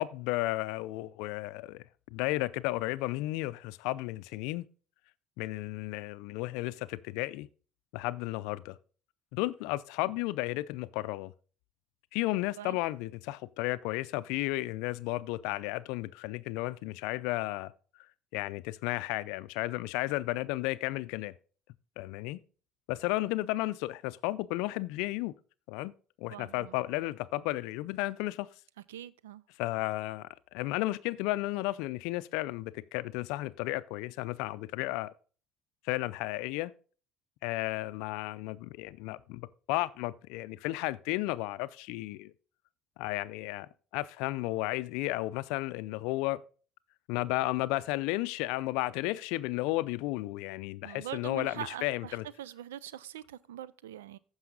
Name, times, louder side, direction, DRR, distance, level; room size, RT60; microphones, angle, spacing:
voice 1, 0.0-1.8 2.1-4.7 5.4-7.5 7.9-8.8 9.3-11.3 12.1-17.7 18.3-21.3 22.0-22.4 22.9-25.3 25.7-25.9 26.2-28.5 29.6-35.1 35.8-36.7 37.4-42.3 43.0-46.4 47.1-52.3, left 19 dB, 75° left, 0.4 m, -33 dB
voice 2, 26.3-26.8 28.9-29.4 50.8-54.2, right 11 dB, 85° right, 0.4 m, -43 dB
15.0 x 5.6 x 3.9 m
hypercardioid pair, 65°, 0 cm